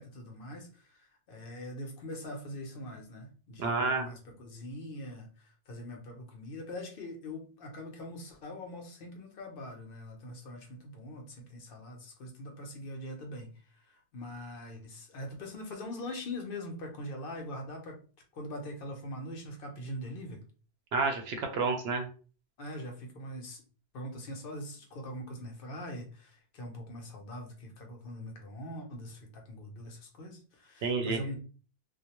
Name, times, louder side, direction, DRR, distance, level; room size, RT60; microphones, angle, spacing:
voice 1, 0.0-18.0 18.3-20.4 22.6-23.6 23.9-31.4, left 1 dB, 60° left, 2 dB, 0.7 m, -42 dB
voice 2, 3.6-4.1 20.9-22.1 30.8-31.2, right 4 dB, 65° right, 4 dB, 0.8 m, -29 dB
2.3 x 2.1 x 2.9 m, 0.38 s
omnidirectional pair, 1.2 m